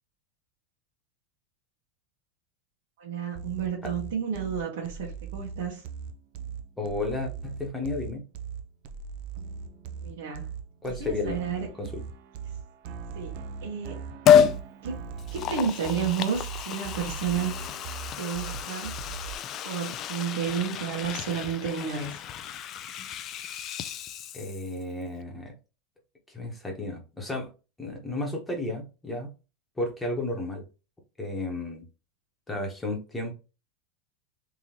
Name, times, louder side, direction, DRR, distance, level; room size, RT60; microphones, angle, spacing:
voice 1, 3.0-5.8 10.0-10.5 11.0-11.7 13.1-14.0 14.8-17.6 18.2-18.9 19.6-22.2, right 7 dB, 75° right, 1.3 m, -31 dB
sound 1, 3.3-19.3, right 6 dB, 55° right, 0.5 m, -39 dB
voice 2, 6.8-8.2 10.8-11.4 11.8-12.0 24.3-25.5 26.3-27.5 27.8-29.3 29.8-30.6 31.2-31.9 32.5-33.3, left 2 dB, 10° left, 1.1 m, -33 dB
Liquid, 14.3-14.6 15.2-24.8 25.1-25.2, left 8 dB, 35° left, 0.3 m, -28 dB
3.6 x 2.9 x 2.9 m
supercardioid pair, 150°, 0 cm